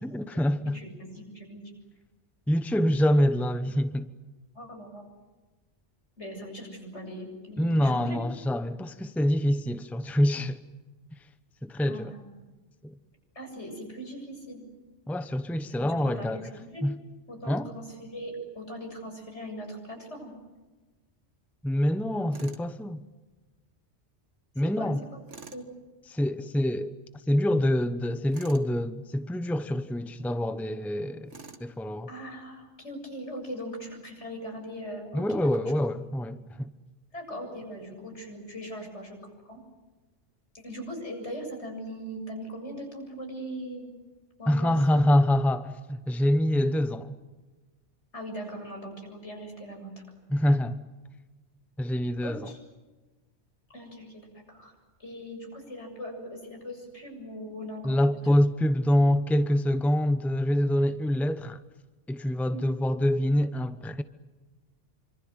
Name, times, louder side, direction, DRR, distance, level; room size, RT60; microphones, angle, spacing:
voice 1, 0.0-0.8 2.5-4.1 7.6-10.6 11.6-12.1 12.8-12.9 15.1-16.5 16.8-16.9 17.5-17.7 21.6-23.0 24.6-25.0 26.1-26.9 27.3-31.3 31.6-32.1 35.1-36.7 44.5-47.2 50.3-50.8 51.8-52.4 57.8-61.6 62.1-64.0, left 1 dB, ahead, 0.9 m, -25 dB
voice 2, 0.6-1.6 4.5-5.0 6.2-8.2 11.8-12.2 13.3-14.7 15.8-16.9 17.3-20.3 24.8-24.9 25.5-25.7 32.1-35.5 37.1-39.2 39.4-39.6 40.5-44.0 44.4-45.0 48.1-50.2 52.2-52.6 53.7-58.2 62.5-62.8, equal, 75° left, 7.9 m, -40 dB
Tools, 22.3-22.7 25.3-25.7 28.3-28.7 31.3-31.7, right 4 dB, 85° right, 2.2 m, -46 dB
27.0 x 25.5 x 8.0 m
omnidirectional pair, 1.2 m